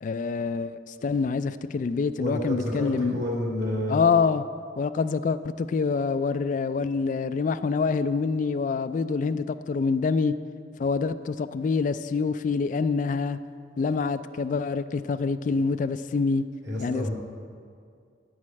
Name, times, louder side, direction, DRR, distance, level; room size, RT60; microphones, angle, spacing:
voice 1, 0.0-3.2 3.9-4.4 4.8-10.3 10.8-13.4 13.8-16.4 16.8-17.1, left 4 dB, 45° left, 12 dB, 0.3 m, -26 dB
voice 2, 2.2-4.0 16.6-17.1, left 1 dB, 60° right, -3 dB, 3.0 m, -29 dB
9.2 x 6.4 x 8.6 m, 2.3 s
head